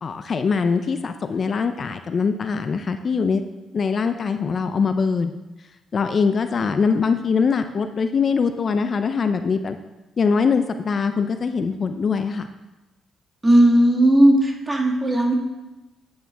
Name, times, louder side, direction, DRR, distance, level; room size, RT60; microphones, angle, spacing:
voice 1, 0.0-3.4 3.7-5.3 5.9-9.8 10.2-12.5, left 5 dB, 45° left, 8 dB, 0.5 m, -22 dB
voice 2, 13.4-15.3, right 1 dB, 20° right, 1 dB, 1.6 m, -16 dB
9.3 x 8.7 x 3.5 m, 1.1 s
cardioid pair, 90°, 0 cm